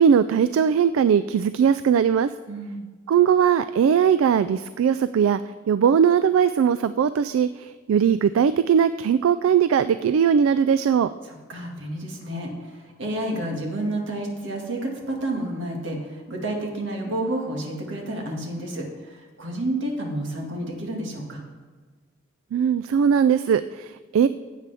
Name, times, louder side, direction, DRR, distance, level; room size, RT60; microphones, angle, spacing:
voice 1, 0.0-2.3 3.1-5.4 5.7-11.1 22.5-24.3, right 7 dB, 80° right, 13 dB, 0.3 m, -19 dB
voice 2, 2.5-2.9 11.2-21.4, right 1 dB, 60° right, 0 dB, 2.0 m, -30 dB
16.0 x 8.2 x 3.5 m, 1.4 s
head